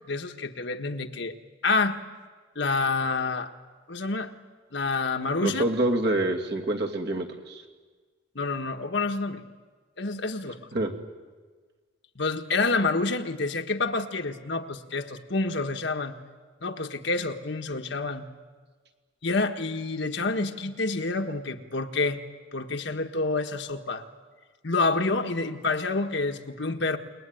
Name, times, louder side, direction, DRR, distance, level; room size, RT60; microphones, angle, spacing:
voice 1, 0.1-1.3 1.6-2.0 2.5-3.5 3.9-4.3 4.7-5.6 8.3-9.4 10.0-10.6 12.1-16.1 16.6-18.3 19.2-22.2 22.5-24.0 24.6-27.0, left 3 dB, 60° left, 5 dB, 1.4 m, -28 dB
voice 2, 5.4-7.6 10.7-10.9, right 2 dB, 55° right, 1 dB, 2.8 m, -26 dB
29.0 x 21.0 x 9.2 m, 1.5 s
head